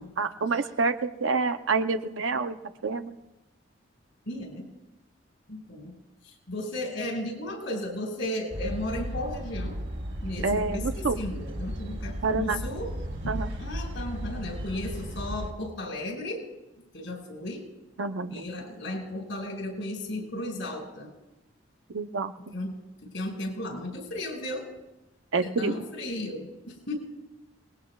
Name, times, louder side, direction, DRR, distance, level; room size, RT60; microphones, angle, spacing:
voice 1, 0.2-2.6 2.8-3.2 10.4-11.2 12.2-12.6 13.3-13.5 18.0-18.4 21.9-22.5 25.3-25.7, right 4 dB, 85° right, 9 dB, 0.7 m, -27 dB
voice 2, 4.3-4.7 5.5-5.9 6.2-9.8 10.2-13.3 13.6-16.5 16.9-17.7 18.3-21.1 22.5-22.7 23.0-24.7 25.4-27.0, left 1 dB, 80° left, 1 dB, 5.1 m, -35 dB
sound 1, 8.5-15.5, equal, 60° right, 3.1 m, -35 dB
29.0 x 20.0 x 2.3 m, 0.98 s
head